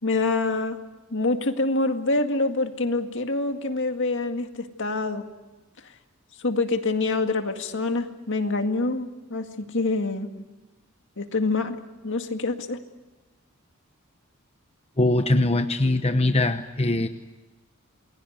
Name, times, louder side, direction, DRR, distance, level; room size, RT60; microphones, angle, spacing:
voice 1, 0.0-0.8 1.1-5.3 6.4-10.3 11.2-11.8 12.0-12.8, left 3 dB, 60° left, 6 dB, 2.0 m, -26 dB
voice 2, 15.0-17.1, left 2 dB, 30° left, 8 dB, 0.9 m, -22 dB
28.5 x 22.0 x 8.1 m, 1.2 s
head